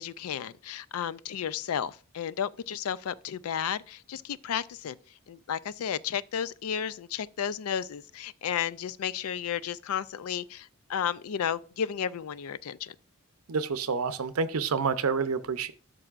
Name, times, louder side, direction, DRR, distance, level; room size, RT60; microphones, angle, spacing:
voice 1, 0.0-5.0 5.3-12.9, left 8 dB, 85° left, 0.4 m, -33 dB
voice 2, 13.5-15.7, right 5 dB, 85° right, 0.6 m, -28 dB
12.5 x 6.2 x 2.4 m
head